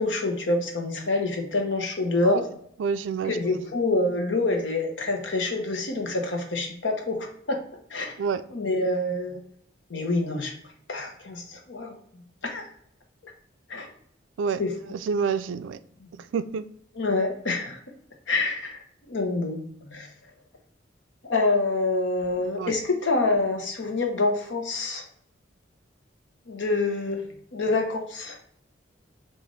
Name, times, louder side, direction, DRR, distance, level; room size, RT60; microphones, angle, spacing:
voice 1, 0.0-2.4 3.2-7.6 7.9-8.2 8.5-9.4 9.9-10.5 10.9-12.2 12.5-12.7 13.2-13.3 13.7-13.9 14.6-14.7 16.9-17.8 18.3-19.6 19.9-20.1 21.3-25.0 26.5-27.2 27.5-28.4, left 2 dB, 75° left, 0.9 m, -26 dB
voice 2, 2.8-3.3 8.2-8.4 14.4-14.6 15.1-15.8 16.3-16.7 22.6-22.7, right 6 dB, 90° right, 0.3 m, -27 dB
6.4 x 2.5 x 3.2 m
head